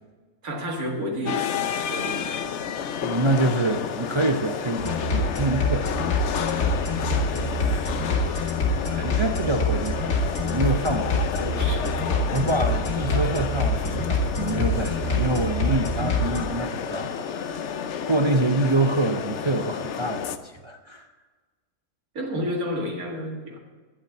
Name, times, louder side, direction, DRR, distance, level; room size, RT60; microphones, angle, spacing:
voice 1, 0.4-1.5 1.9-2.6 6.9-8.6 8.9-9.3 11.3-11.8 22.1-23.6, equal, 90° right, 0 dB, 2.4 m, -32 dB
sound 1, 1.2-20.4, left 7 dB, 60° left, 0.9 m, -31 dB
voice 2, 3.0-5.9 9.0-11.3 11.7-11.9 12.3-17.8 18.1-21.1, right 2 dB, 35° right, 4 dB, 0.4 m, -26 dB
sound 2, 4.8-16.4, left 1 dB, 80° left, 2.3 m, -26 dB
12.0 x 7.6 x 8.0 m, 1.3 s
omnidirectional pair, 1.5 m